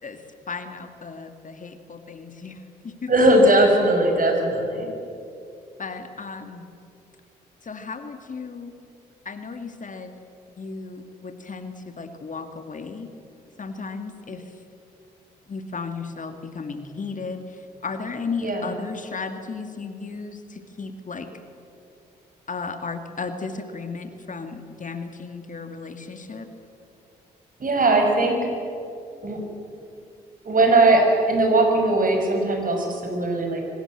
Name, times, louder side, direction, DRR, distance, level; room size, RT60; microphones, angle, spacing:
voice 1, 0.0-3.1 5.8-6.7 7.6-8.7 9.3-10.1 10.5-13.1 13.6-14.6 15.5-21.3 22.5-26.5, left 4 dB, 40° left, 7 dB, 2.2 m, -35 dB
voice 2, 3.1-4.9 18.4-18.7 27.6-28.4 29.2-29.4 30.4-33.6, right 2 dB, 45° right, 3 dB, 6.5 m, -19 dB
24.0 x 21.0 x 7.9 m, 2.7 s
hypercardioid pair, 45°, 20 cm